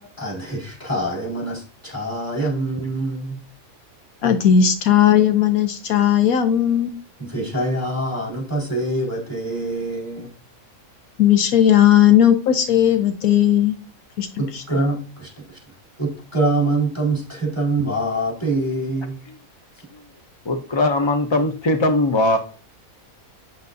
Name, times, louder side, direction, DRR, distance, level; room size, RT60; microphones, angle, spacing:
voice 1, 0.2-3.4 7.2-10.3 14.4-15.6 16.0-19.2, right 2 dB, 10° left, 4.3 m, -25 dB
voice 2, 4.2-7.0 11.2-13.8 14.2-14.3 14.5-14.6, left 9 dB, 80° left, 1.2 m, -16 dB
voice 3, 20.5-22.4, left 2 dB, 40° left, 0.4 m, -20 dB
8.7 x 7.9 x 2.6 m
omnidirectional pair, 1.5 m